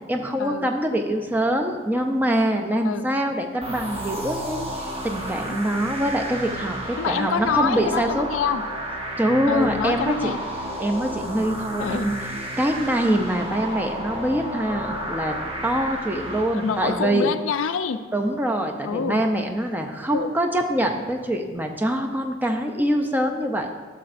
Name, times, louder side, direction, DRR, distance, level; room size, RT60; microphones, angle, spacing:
voice 1, 0.1-8.3 9.2-10.3 10.8-12.2 12.6-15.4 15.6-17.3 18.1-23.9, right 1 dB, 10° right, 4 dB, 0.4 m, -24 dB
sound 1, 3.6-17.1, right 1 dB, 30° right, 1.1 m, -32 dB
voice 2, 7.0-8.6 9.5-10.4 11.8-12.1 16.5-18.0 18.8-19.2 20.1-20.3, left 6 dB, 80° left, 11 dB, 0.4 m, -26 dB
11.5 x 6.9 x 2.5 m, 1.5 s
head